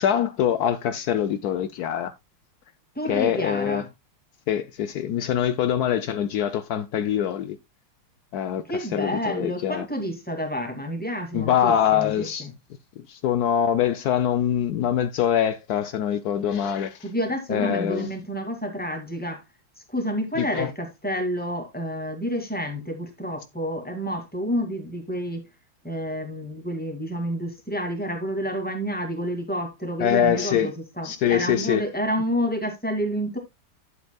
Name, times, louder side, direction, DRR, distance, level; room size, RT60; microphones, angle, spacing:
voice 1, 0.0-2.1 3.1-3.8 4.5-7.6 8.3-8.6 8.9-9.9 11.3-12.5 13.1-17.0 17.5-18.1 20.4-20.7 30.0-30.7 31.0-31.8, left 9 dB, 85° left, 0.8 m, -24 dB
voice 2, 3.0-3.9 8.6-12.5 17.0-19.4 19.9-25.4 25.8-33.4, equal, 5° left, 2.1 m, -29 dB
11.0 x 8.0 x 2.3 m
omnidirectional pair, 2.4 m